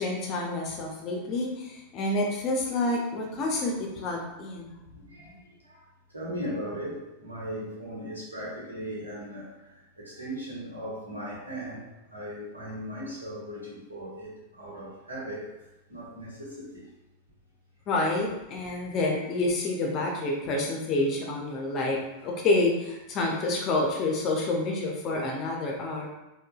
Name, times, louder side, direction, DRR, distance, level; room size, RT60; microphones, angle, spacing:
voice 1, 0.0-4.8 17.9-22.0 22.2-26.1, left 2 dB, 35° left, -1 dB, 0.5 m, -28 dB
voice 2, 4.9-5.4 5.6-5.8 6.1-9.5 10.0-11.8 12.1-15.4 15.9-16.8 21.9-22.3, equal, 80° right, -6 dB, 1.1 m, -38 dB
3.7 x 2.2 x 2.3 m, 0.98 s
figure-of-eight pair, 90°, 0 cm